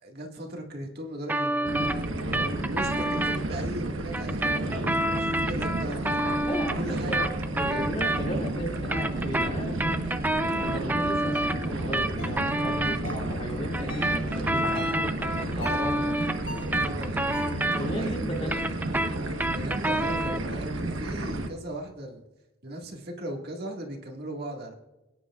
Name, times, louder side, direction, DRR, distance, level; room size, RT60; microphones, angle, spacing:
voice 1, 0.0-2.0 2.6-6.2 6.7-7.3 7.7-8.0 16.8-17.6 17.9-18.9 19.5-22.2 22.6-24.7, right 1 dB, 50° right, 1 dB, 1.9 m, -38 dB
sound 1, 1.3-3.4 4.1-8.5 8.8-13.0 13.7-18.1 18.4-20.5, right 1 dB, 10° right, 0.5 m, -28 dB
sound 2, 1.7-21.5, right 1 dB, 70° right, 1.2 m, -32 dB
voice 2, 6.5-7.2 7.6-10.1 10.6-16.3 17.7-18.6, equal, 30° left, 0 dB, 2.2 m, -35 dB
sound 3, 11.3-11.5 12.2-12.4 13.0-13.3 13.9-14.2 14.7-15.1 15.6-15.9 16.5-16.8 17.3-17.7, left 1 dB, 60° left, 4.3 m, -41 dB
22.5 x 10.0 x 2.4 m, 1.0 s
head